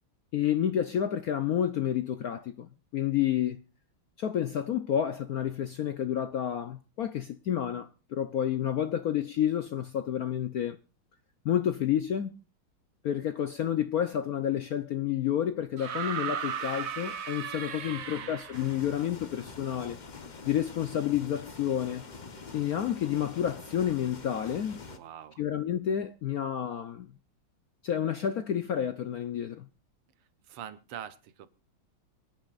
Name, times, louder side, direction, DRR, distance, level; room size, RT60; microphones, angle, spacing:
voice 1, 0.3-3.6 4.2-10.8 11.4-12.4 13.0-20.0 20.4-22.1 22.5-24.8 25.4-27.1 27.8-29.7, left 10 dB, 70° left, 0.9 m, -30 dB
sound 1, 15.8-18.8 20.1-20.2, right 8 dB, 50° right, 1.3 m, -36 dB
voice 2, 17.9-18.4 24.9-25.4 30.5-31.5, right 9 dB, 90° right, 1.9 m, -44 dB
sound 2, 18.5-25.0, left 4 dB, 40° left, 0.6 m, -45 dB
25.5 x 10.0 x 2.4 m
omnidirectional pair, 2.4 m